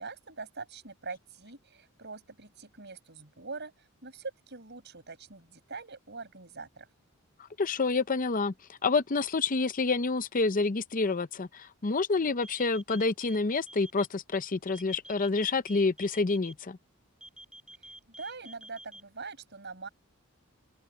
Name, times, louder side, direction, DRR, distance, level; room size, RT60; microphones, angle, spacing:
voice 1, 0.0-6.9 18.2-19.9, right 4 dB, 50° right, 6.3 m, -43 dB
voice 2, 7.6-8.5 8.8-16.8, left 3 dB, 35° left, 0.6 m, -28 dB
sound 1, 12.4-14.1 14.7-16.5 17.2-19.0, right 1 dB, 5° right, 5.4 m, -48 dB
open air
head